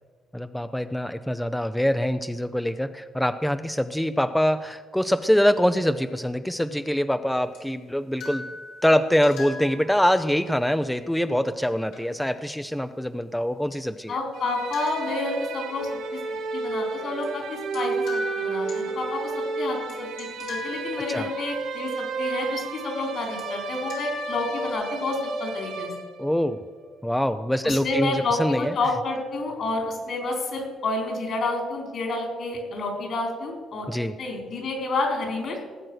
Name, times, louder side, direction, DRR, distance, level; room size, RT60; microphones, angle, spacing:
voice 1, 0.3-8.4 8.8-14.2 21.1-21.3 26.2-26.6 27.0-28.7 33.9-34.1, equal, 5° left, 10 dB, 0.5 m, -24 dB
sound 1, 7.5-7.6 8.2-10.4 11.9-12.0 13.7-13.8 14.7-15.8 17.2-17.3 17.7-17.8 18.1-19.3 19.9-20.0 20.2-21.4 23.4-23.5 23.7-24.7, left 2 dB, 90° left, 4.5 m, -38 dB
voice 2, 14.1-16.2 16.5-19.3 19.6-20.1 20.4-25.9 27.6-33.9 34.2-35.6, left 2 dB, 60° left, 1 dB, 4.4 m, -29 dB
sound 2, 14.3-26.4, right 4 dB, 90° right, 3.0 m, -32 dB
18.0 x 7.8 x 6.3 m, 1.6 s
cardioid pair, 90°, 0 cm